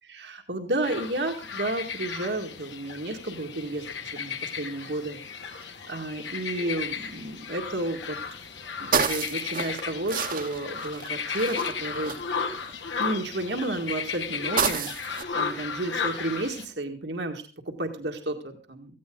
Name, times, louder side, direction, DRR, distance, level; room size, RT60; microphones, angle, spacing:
voice 1, 0.0-5.2 5.9-8.2 8.8-12.2 13.0-19.0, right 2 dB, 75° right, 3 dB, 2.1 m, -32 dB
sound 1, 0.8-16.7, left 6 dB, 90° left, 2.3 m, -34 dB
sound 2, 6.8-7.1 7.6-7.7 7.9-13.1 13.7-15.2, right 6 dB, 50° right, 1.2 m, -30 dB
17.5 x 15.5 x 3.9 m, 0.36 s
head